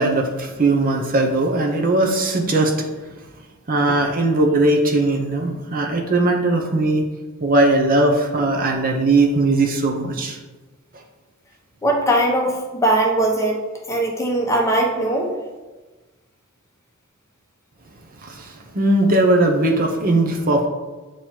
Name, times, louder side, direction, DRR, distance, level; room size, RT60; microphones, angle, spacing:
voice 1, 0.0-2.9 3.7-7.0 7.4-10.4 18.2-20.7, right 2 dB, 40° right, 2 dB, 0.7 m, -19 dB
voice 2, 11.8-13.6 13.9-15.3, right 1 dB, 15° left, 0 dB, 0.9 m, -20 dB
8.4 x 3.1 x 4.4 m, 1.2 s
head